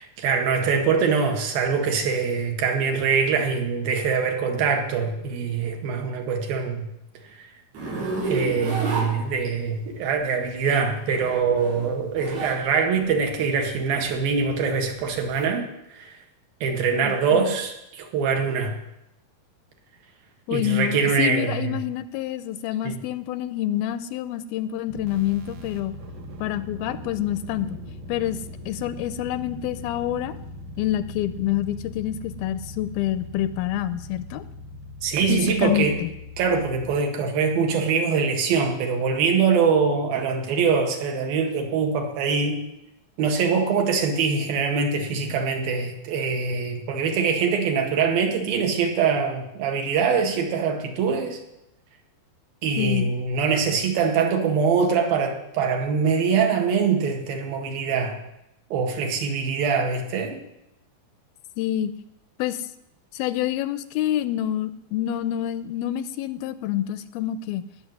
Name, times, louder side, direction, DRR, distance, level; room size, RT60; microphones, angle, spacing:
voice 1, 0.2-6.9 7.4-7.5 8.3-15.7 15.9-16.1 16.6-18.8 20.5-21.8 22.8-22.9 35.0-35.9 36.4-42.6 43.2-51.4 52.6-58.2 58.7-60.4, right 5 dB, 70° right, 3 dB, 3.7 m, -23 dB
Zipper (clothing), 7.7-9.8 10.9-12.6 13.0-15.4, right 2 dB, 90° right, 6.8 m, -30 dB
voice 2, 16.9-17.5 20.5-25.9 26.4-27.8 28.1-30.4 30.8-34.4 35.3-36.1 52.8-53.1 61.6-61.9 62.4-62.7 63.1-67.7, left 12 dB, 80° left, 14 dB, 2.5 m, -27 dB
sound 1, 24.9-37.0, left 1 dB, 55° right, 1.9 m, -40 dB
17.5 x 6.8 x 9.6 m, 0.86 s
omnidirectional pair, 4.4 m